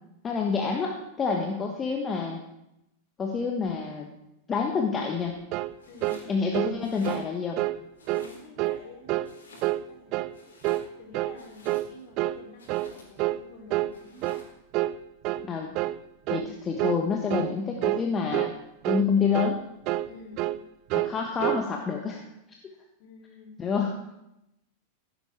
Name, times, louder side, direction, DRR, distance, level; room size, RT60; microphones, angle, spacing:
voice 1, 0.2-2.4 3.2-4.1 4.5-5.3 6.3-7.6 15.4-15.7 16.3-18.5 18.9-19.6 20.9-22.2 23.6-23.9, left 5 dB, 20° left, 2 dB, 1.3 m, -28 dB
sound 1, 5.5-5.8 6.0-6.2 6.5-6.8 7.0-7.3 7.6-7.8 8.1-8.3 8.6-8.8 9.1-9.3 9.6-9.8 10.1-10.4 10.6-10.9 11.1-11.4 11.7-11.9 12.2-12.4 12.7-12.9 13.2-13.4 13.7-13.9 14.2-14.5 14.7-15.0 15.2-15.5 15.8-16.0 16.3-16.5 16.8-17.0 17.3-17.5 17.8-18.1 18.3-18.5 18.8-19.1 19.3-19.6 19.9-20.1 20.4-20.6 20.9-21.7, right 16 dB, 40° right, 0.4 m, -28 dB
Domestic sounds home sounds, 5.8-6.3 6.7-7.6 8.0-8.8 9.2-10.0 10.3-12.1 12.6-13.3 13.9-14.6, left 2 dB, 65° left, 3.8 m, -52 dB
voice 2, 5.8-6.3 8.1-9.1 9.5-10.1 11.0-14.2 16.4-16.5 20.1-20.4 23.0-23.6, left 3 dB, 50° left, 0 dB, 4.7 m, -49 dB
15.5 x 11.5 x 4.8 m, 0.89 s
figure-of-eight pair, 90°, 0 cm